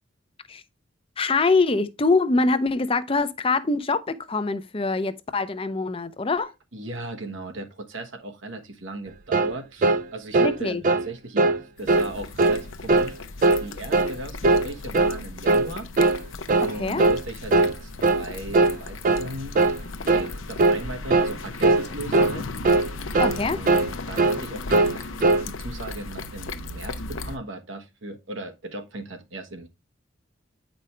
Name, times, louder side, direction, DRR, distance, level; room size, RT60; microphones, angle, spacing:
voice 1, 1.2-6.5 10.4-10.8 16.8-17.0 23.2-23.6, left 3 dB, 30° left, 0.6 m, -24 dB
voice 2, 6.7-13.1 13.6-15.9 16.7-19.5 20.1-22.5 23.1-25.1 25.4-29.7, right 1 dB, 75° right, 1.3 m, -37 dB
sound 1, 9.3-9.6 9.8-10.0 10.3-10.6 10.8-11.1 11.4-11.6 11.9-12.1 12.4-12.6 12.9-13.1 13.4-13.6 13.9-14.2 14.4-14.7 14.9-15.2 15.5-15.7 16.0-16.2 16.5-16.7 17.0-17.2 17.5-17.7 18.0-18.3 18.5-18.8 19.0-19.3 19.6-19.8 20.1-20.3 20.6-20.8 21.1-21.3 21.6-21.9 22.1-22.3 22.6-22.9 23.1-23.4 23.7-23.9 24.2-24.4 24.7-25.0 25.2-25.5, right 3 dB, 40° right, 0.4 m, -20 dB
sound 2, 11.8-27.4, left 3 dB, 90° left, 0.7 m, -36 dB
8.7 x 5.2 x 3.2 m
head